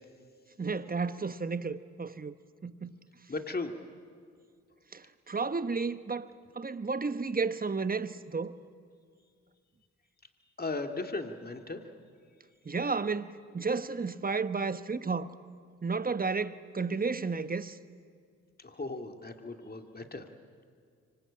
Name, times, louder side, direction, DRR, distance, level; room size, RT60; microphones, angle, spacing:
voice 1, 0.6-2.3 2.6-3.0 4.9-8.5 12.6-15.3 15.8-17.8, right 4 dB, 30° right, 1.1 m, -32 dB
voice 2, 3.3-3.7 10.6-11.8 18.6-20.2, left 3 dB, 30° left, 2.4 m, -37 dB
26.0 x 24.5 x 8.7 m
supercardioid pair, 55°, 31 cm